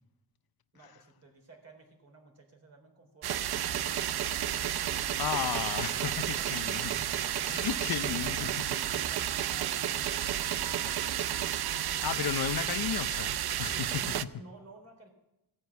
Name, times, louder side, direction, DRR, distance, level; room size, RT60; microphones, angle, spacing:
voice 1, 0.7-4.5 6.1-7.1 8.1-8.5 14.0-15.1, right 2 dB, 35° right, 3 dB, 3.8 m, -55 dB
sound 1, 3.2-14.2, right 11 dB, 65° right, 0.6 m, -32 dB
voice 2, 5.2-6.8 7.5-8.5 10.8-10.9 12.0-14.0, left 10 dB, 60° left, 13 dB, 0.6 m, -34 dB
16.5 x 9.4 x 8.2 m, 0.89 s
wide cardioid pair, 130°, 41 cm